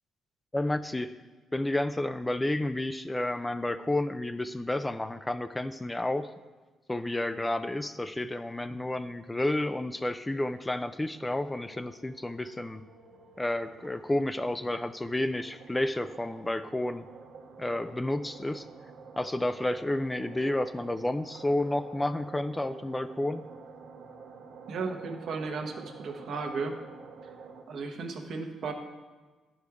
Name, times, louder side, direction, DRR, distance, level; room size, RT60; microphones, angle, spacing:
voice 1, 0.5-1.1 1.5-6.3 6.9-12.8 13.4-17.1 17.6-18.7 19.2-23.4, left 1 dB, 15° left, 11 dB, 0.3 m, -31 dB
sound 1, 11.4-27.6, right 4 dB, 85° right, 1.1 m, -50 dB
voice 2, 24.7-26.8 27.7-28.7, right 4 dB, 65° right, 4 dB, 1.0 m, -35 dB
10.5 x 5.1 x 4.7 m, 1.3 s
cardioid pair, 90°, 0 cm